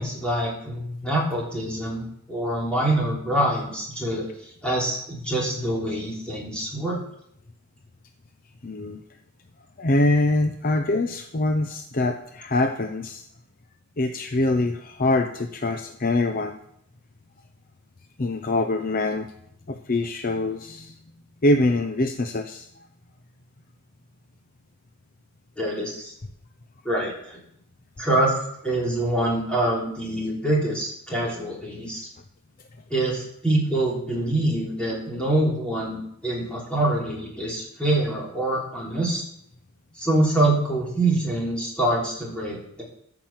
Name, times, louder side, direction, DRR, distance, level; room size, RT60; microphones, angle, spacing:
voice 1, 0.0-4.3 4.6-7.0 25.6-26.1 26.8-27.4 28.0-28.3 28.6-32.1 32.9-39.2 40.0-42.8, right 1 dB, 5° left, -5 dB, 3.6 m, -25 dB
voice 2, 8.6-9.0 9.8-13.2 14.0-16.6 18.2-19.3 19.7-20.9 21.4-22.7, left 2 dB, 40° left, 7 dB, 0.7 m, -24 dB
13.5 x 6.0 x 7.5 m, 0.70 s
head